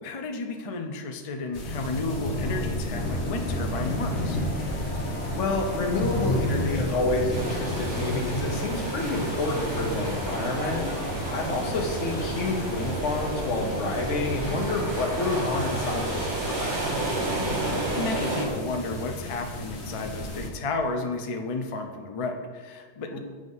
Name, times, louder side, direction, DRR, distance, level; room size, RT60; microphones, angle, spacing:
voice 1, 0.0-4.4 17.7-23.2, left 3 dB, 45° left, 5 dB, 0.5 m, -32 dB
sound 1, 1.5-20.5, left 1 dB, 70° left, 1.2 m, -32 dB
sound 2, 2.9-13.4, equal, 10° left, 0.8 m, -39 dB
voice 2, 5.3-10.9 11.3-16.9 23.1-23.2, left 2 dB, 85° left, 2 dB, 1.4 m, -29 dB
sound 3, 7.3-18.5, right 2 dB, 40° right, 1.5 m, -32 dB
7.8 x 3.5 x 5.3 m, 1.5 s
omnidirectional pair, 1.2 m